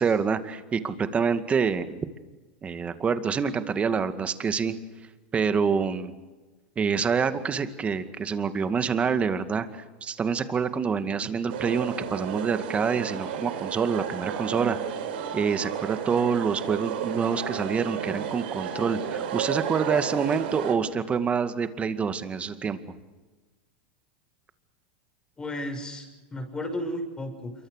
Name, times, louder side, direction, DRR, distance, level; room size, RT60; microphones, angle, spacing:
voice 1, 0.0-2.0 2.6-4.8 5.3-6.1 6.8-14.8 15.3-22.8, right 6 dB, 25° right, 10 dB, 2.1 m, -26 dB
sound 1, 11.5-20.7, right 8 dB, 75° right, 4.4 m, -33 dB
voice 2, 25.4-27.5, left 1 dB, 15° left, 6 dB, 6.0 m, -33 dB
27.5 x 23.5 x 6.6 m, 1.2 s
hypercardioid pair, 110°, 5 cm